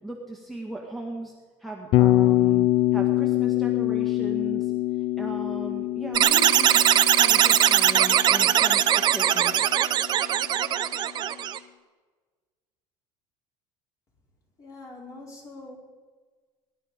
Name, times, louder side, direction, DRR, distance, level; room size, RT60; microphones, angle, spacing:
voice 1, 0.0-1.3 1.6-6.8 7.2-9.7, right 2 dB, ahead, 0 dB, 1.8 m, -37 dB
Bass guitar, 1.9-10.0, left 16 dB, 55° left, 0.7 m, -25 dB
sound 1, 6.1-11.6, right 11 dB, 40° right, 0.7 m, -20 dB
voice 2, 14.6-15.8, left 2 dB, 30° left, -2 dB, 5.1 m, -43 dB
21.5 x 11.0 x 5.2 m, 1.4 s
cardioid pair, 130°, 11 cm